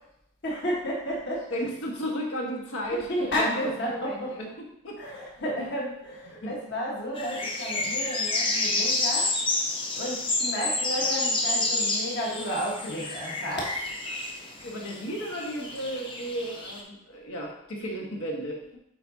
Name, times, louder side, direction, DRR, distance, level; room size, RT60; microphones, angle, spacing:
voice 1, 0.4-1.6 2.9-4.4 5.0-9.4 9.9-13.8, equal, 50° left, -4 dB, 1.5 m, -32 dB
voice 2, 1.5-5.0 5.6-5.7 6.3-6.5 14.6-18.6, equal, 75° left, -1 dB, 1.5 m, -34 dB
sound 1, 7.2-16.8, left 2 dB, 25° left, 0.7 m, -29 dB
7.7 x 5.0 x 2.8 m, 0.79 s
head